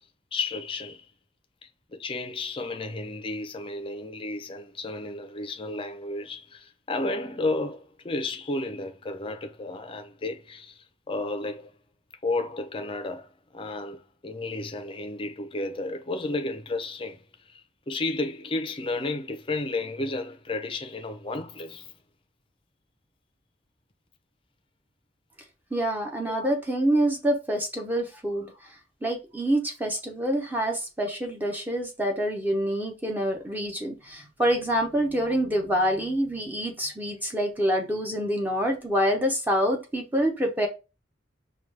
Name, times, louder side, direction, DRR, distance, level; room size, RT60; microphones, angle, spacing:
voice 1, 0.3-1.1 1.6-11.7 12.2-17.6 17.9-21.9 26.3-26.5, left 2 dB, 30° left, 0.5 m, -32 dB
voice 2, 25.7-28.5 29.0-40.7, equal, 10° right, 0.7 m, -26 dB
4.9 x 2.3 x 3.2 m
head